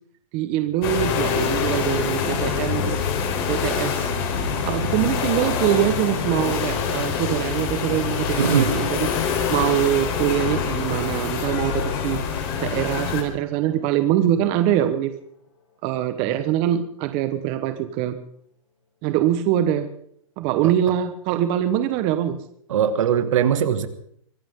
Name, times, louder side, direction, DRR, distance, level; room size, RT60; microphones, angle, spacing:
voice 1, 0.3-3.1 3.5-4.1 4.6-9.1 9.5-15.1 15.8-18.2 19.0-19.9 20.4-22.4, right 12 dB, 35° right, 9 dB, 1.2 m, -23 dB
sound 1, 0.8-13.2, left 6 dB, 45° left, 3.8 m, -25 dB
Gong, 2.5-14.5 14.9-15.1, left 4 dB, 85° left, 6.1 m, -40 dB
voice 2, 8.4-8.8 20.6-20.7 22.7-23.9, right 8 dB, 70° right, 9 dB, 2.0 m, -20 dB
24.0 x 15.0 x 3.8 m, 0.68 s
hypercardioid pair, 150°, 17 cm